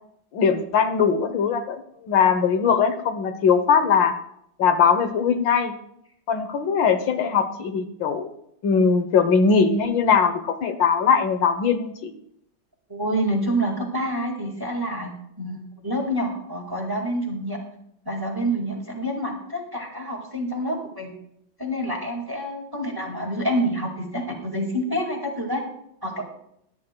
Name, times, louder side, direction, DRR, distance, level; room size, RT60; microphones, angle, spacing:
voice 1, 0.3-4.1 4.6-5.7 6.3-8.3 8.6-12.1, left 6 dB, 70° left, 8 dB, 1.6 m, -20 dB
voice 2, 12.9-17.6 18.0-21.1 21.6-25.6 26.0-26.2, equal, 10° right, 1 dB, 1.6 m, -27 dB
21.5 x 10.5 x 2.2 m, 0.73 s
omnidirectional pair, 2.1 m